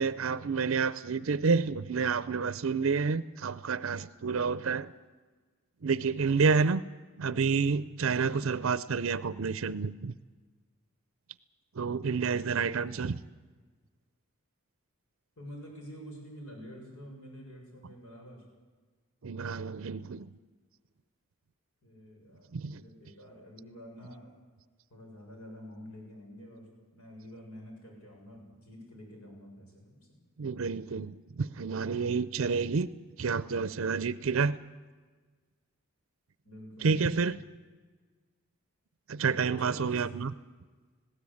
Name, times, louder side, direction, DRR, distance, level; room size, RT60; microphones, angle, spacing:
voice 1, 0.0-4.9 5.8-6.8 7.2-10.1 11.8-13.2 19.2-20.3 22.5-22.8 30.4-32.9 33.2-34.6 36.8-37.4 39.1-40.3, right 5 dB, 65° right, 16 dB, 0.5 m, -29 dB
voice 2, 15.4-18.4 21.8-24.3 24.9-30.0 31.7-32.0 36.4-37.3 39.6-40.2, equal, 85° left, 0 dB, 7.0 m, -48 dB
19.5 x 17.0 x 8.6 m, 1.4 s
head